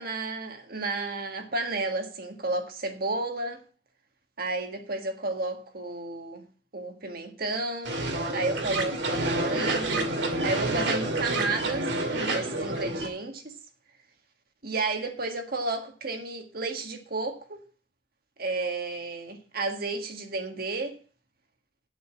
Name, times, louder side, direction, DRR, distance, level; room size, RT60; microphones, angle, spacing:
voice 1, 0.0-3.6 4.4-6.4 6.7-8.1 8.3-10.1 10.4-11.9 12.3-13.5 14.6-17.6 18.4-21.0, right 2 dB, 55° right, 1.7 m, -32 dB
sound 1, 7.8-13.1, right 2 dB, 70° right, 2.4 m, -28 dB
8.1 x 7.3 x 8.6 m
head